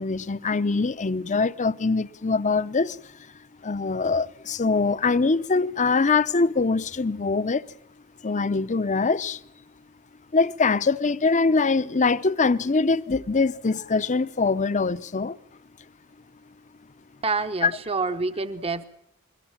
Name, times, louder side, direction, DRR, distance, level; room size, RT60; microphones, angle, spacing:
voice 1, 0.0-3.1 3.6-7.7 8.2-9.4 10.3-15.4 17.6-17.7, left 4 dB, 35° left, 0.7 m, -23 dB
voice 2, 17.2-18.9, right 3 dB, 25° right, 0.9 m, -27 dB
22.0 x 20.0 x 7.4 m
head